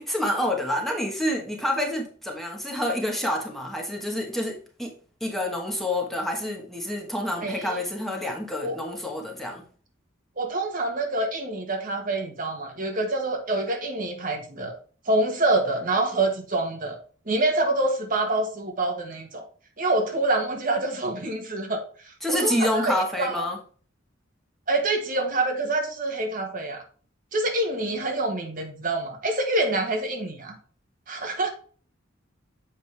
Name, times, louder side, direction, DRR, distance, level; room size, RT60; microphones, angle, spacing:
voice 1, 0.0-4.9 5.2-9.6 22.2-23.6, left 1 dB, ahead, 1.2 m, -28 dB
voice 2, 7.4-7.8 8.6-8.8 10.4-14.8 15.1-17.0 17.3-19.4 19.8-23.4 24.7-26.8 27.3-30.6 31.1-31.5, right 2 dB, 45° right, 1.4 m, -26 dB
7.3 x 5.1 x 3.3 m
head